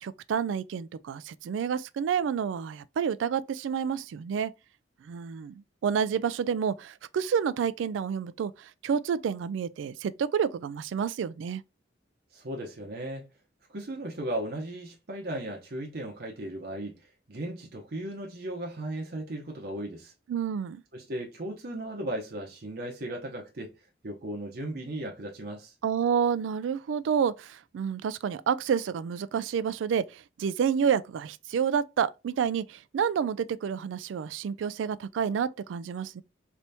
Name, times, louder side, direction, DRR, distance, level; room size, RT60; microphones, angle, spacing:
voice 1, 0.0-4.5 5.0-11.6 20.3-20.8 25.8-36.2, right 7 dB, 80° right, 0.3 m, -29 dB
voice 2, 12.3-13.3 13.7-20.1 20.9-23.7 24.0-25.7, right 1 dB, 55° right, 0.7 m, -36 dB
3.4 x 2.8 x 2.6 m
head